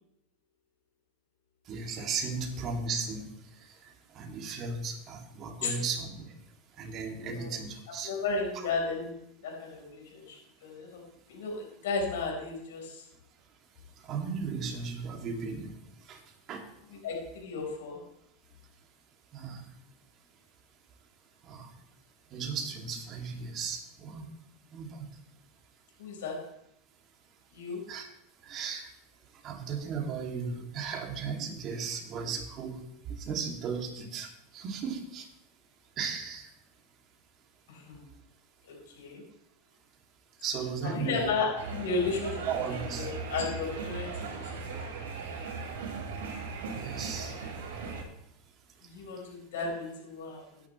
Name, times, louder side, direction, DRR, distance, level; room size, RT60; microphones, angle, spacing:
voice 1, 1.7-3.3 4.1-6.3 6.8-8.1 8.5-8.7 14.1-15.7 16.1-16.2 16.5-16.7 19.3-19.6 21.5-21.7 22.3-24.2 24.7-25.0 27.9-28.1 28.5-28.9 29.4-32.8 33.1-35.2 36.0-36.5 40.4-41.3 42.5-43.1 46.8-47.3, right 5 dB, 40° right, 1 dB, 2.7 m, -35 dB
voice 2, 7.1-7.5 8.0-9.1 9.4-11.0 11.3-13.0 17.0-18.0 26.0-26.4 27.5-27.8 37.7-38.1 38.6-39.2 40.9-42.5 43.0-44.4 48.8-50.6, left 4 dB, 85° left, 0 dB, 4.5 m, -34 dB
sound 1, 41.6-48.0, right 4 dB, 85° right, 3.6 m, -38 dB
16.0 x 10.5 x 3.3 m, 0.79 s
supercardioid pair, 115°, 0 cm